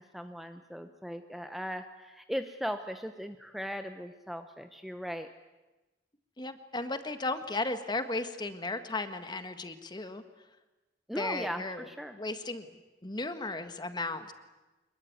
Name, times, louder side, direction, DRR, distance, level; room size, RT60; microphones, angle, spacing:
voice 1, 0.1-5.3 11.1-12.1, equal, ahead, 7 dB, 0.9 m, -38 dB
voice 2, 6.4-10.2 11.2-11.9 12.1-12.7 13.0-14.3, left 2 dB, 25° left, 9 dB, 1.6 m, -35 dB
25.5 x 22.0 x 9.5 m, 1.1 s
head